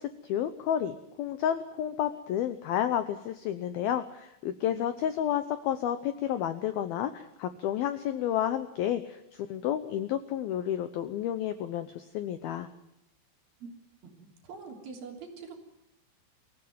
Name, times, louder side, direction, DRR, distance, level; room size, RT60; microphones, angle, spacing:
voice 1, 0.0-12.7, left 10 dB, 85° left, 11 dB, 2.1 m, -31 dB
voice 2, 14.0-15.6, right 4 dB, 50° right, 1 dB, 4.7 m, -44 dB
23.5 x 16.0 x 9.3 m, 0.83 s
omnidirectional pair, 5.7 m